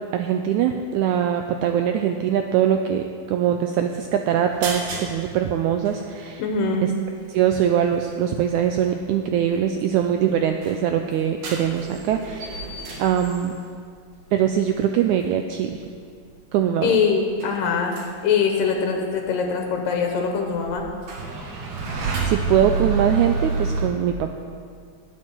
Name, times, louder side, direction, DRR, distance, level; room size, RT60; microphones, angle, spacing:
voice 1, 0.1-6.4 6.8-6.9 7.3-12.6 13.0-13.5 14.3-15.8 16.5-17.0 21.9-24.4, right 9 dB, 85° right, 5 dB, 1.7 m, -22 dB
sound 1, 4.4-5.1 5.5-5.6 5.9-6.0 7.5-7.6 8.1-8.4 9.0-9.4 9.8-9.9 10.1-13.7 14.2-14.4 15.3-15.4 15.6-15.8 16.3-16.5 16.8-17.0 17.3-18.2 18.4-18.6 19.7-19.8 20.1-23.9, right 4 dB, 65° right, 3.1 m, -29 dB
voice 2, 6.4-6.9 16.8-17.9 18.2-20.8, left 5 dB, 80° left, 2 dB, 2.7 m, -22 dB
18.0 x 9.2 x 4.5 m, 2.1 s
omnidirectional pair, 3.9 m